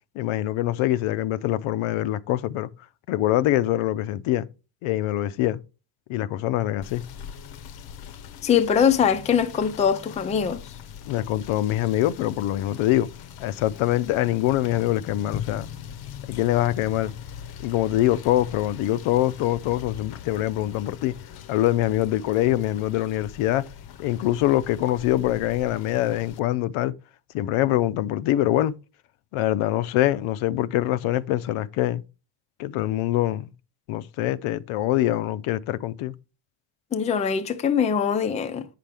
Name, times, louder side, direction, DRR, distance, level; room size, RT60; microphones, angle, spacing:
voice 1, 0.2-2.7 3.1-4.5 4.8-5.6 6.1-7.0 11.1-13.1 13.4-15.7 16.3-17.1 17.6-21.1 21.5-23.7 24.0-26.9 27.3-28.8 29.3-32.0 32.6-33.5 33.9-36.1, left 14 dB, 90° left, 0.6 m, -24 dB
Rain / Motor vehicle (road), 6.8-26.4, left 9 dB, 50° left, 0.7 m, -41 dB
voice 2, 8.4-10.6 36.9-38.7, left 7 dB, 15° left, 0.3 m, -22 dB
8.3 x 5.9 x 3.4 m
cardioid pair, 165°, 48 cm